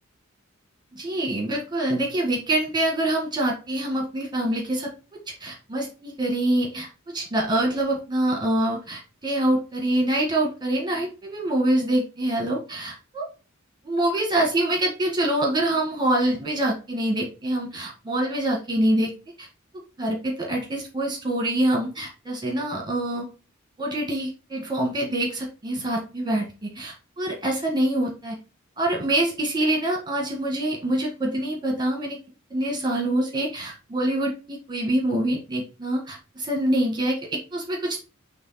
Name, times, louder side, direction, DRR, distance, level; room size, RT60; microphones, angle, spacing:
voice 1, 0.9-13.3 13.8-19.1 19.4-19.5 19.7-23.3 23.8-28.4 28.8-32.2 32.5-38.0, right 1 dB, 20° right, 0 dB, 1.6 m, -25 dB
7.1 x 3.4 x 4.1 m, 0.32 s
head